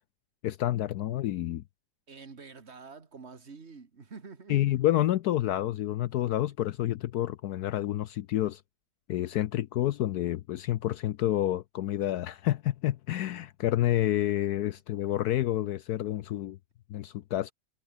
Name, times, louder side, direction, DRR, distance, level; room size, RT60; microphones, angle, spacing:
voice 1, 0.4-1.6 4.5-8.6 9.1-16.6 16.9-17.5, left 13 dB, 70° left, 1.1 m, -29 dB
voice 2, 2.1-4.6, right 4 dB, 40° right, 2.2 m, -47 dB
omnidirectional pair, 1.8 m